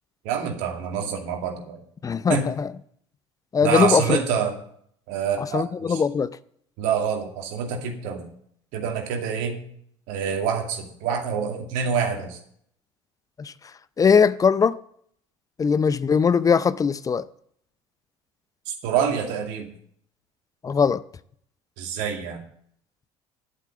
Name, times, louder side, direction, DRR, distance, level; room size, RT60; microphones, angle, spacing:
voice 1, 0.2-1.8 2.3-2.5 3.6-4.5 5.1-6.0 6.8-8.3 8.7-9.6 10.1-12.4 18.7-19.7 21.8-22.4, right 7 dB, 60° right, 2.4 m, -26 dB
voice 2, 2.0-2.7 3.5-4.2 5.4-6.3 13.4-13.5 14.0-14.8 15.6-17.3 20.6-21.0, left 6 dB, 25° left, 0.6 m, -20 dB
11.5 x 8.4 x 6.8 m
figure-of-eight pair, 60°, 15 cm